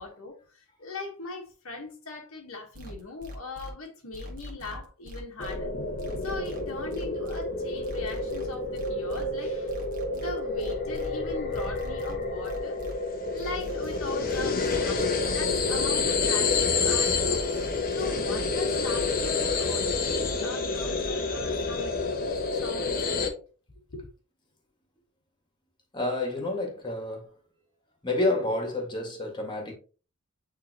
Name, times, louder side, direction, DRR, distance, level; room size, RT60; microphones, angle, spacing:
voice 1, 0.0-5.7 6.2-9.8 10.1-12.8 13.3-17.4 17.9-23.3 23.9-24.1, left 3 dB, 70° left, 1.4 m, -40 dB
sound 1, 2.7-3.7 4.1-5.5 6.0-7.4 7.8-9.2 9.7-11.1 11.5-12.9 13.4-14.8 15.2-16.6 17.0-18.5 18.9-20.3 20.7-21.1, left 1 dB, 40° right, 1.5 m, -42 dB
sound 2, 5.4-23.3, left 4 dB, 40° left, 1.0 m, -28 dB
voice 2, 25.9-27.3 28.0-29.7, left 2 dB, 20° left, 1.9 m, -29 dB
8.8 x 3.7 x 3.0 m
head